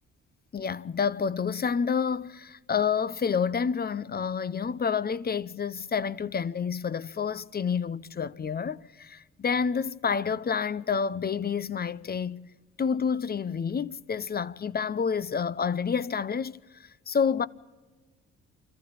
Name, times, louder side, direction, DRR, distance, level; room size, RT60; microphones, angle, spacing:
voice 1, 0.5-12.4 12.8-16.6 17.1-17.5, left 6 dB, 30° left, 0.8 m, -29 dB
26.0 x 14.5 x 8.7 m
cardioid pair, 90°, 30 cm